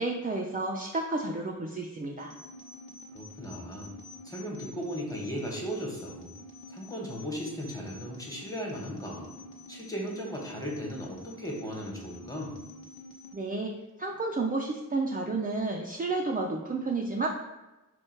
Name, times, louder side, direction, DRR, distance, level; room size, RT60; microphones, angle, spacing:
voice 1, 0.0-2.3 13.3-13.7 14.0-17.3, right 3 dB, 25° right, 0 dB, 0.4 m, -31 dB
sound 1, 2.3-13.3, left 1 dB, 80° left, 1.0 m, -48 dB
voice 2, 3.1-3.9 4.2-6.3 6.7-9.3 9.7-12.6, equal, 10° left, -1 dB, 1.2 m, -36 dB
4.4 x 2.3 x 4.4 m, 1.1 s
wide cardioid pair, 75°, 34 cm